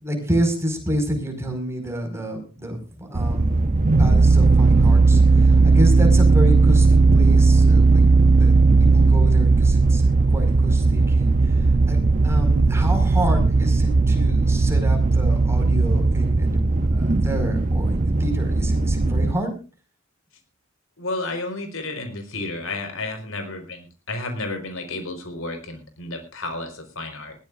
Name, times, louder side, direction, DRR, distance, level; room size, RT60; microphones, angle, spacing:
voice 1, 0.0-8.1 8.3-11.6 11.9-16.6 16.9-19.5, equal, 15° right, 4 dB, 5.1 m, -28 dB
sound 1, 3.1-19.3, right 3 dB, 40° right, 0.6 m, -17 dB
voice 2, 21.0-27.3, left 2 dB, 85° left, 6 dB, 4.7 m, -32 dB
21.0 x 15.0 x 2.5 m, 0.34 s
head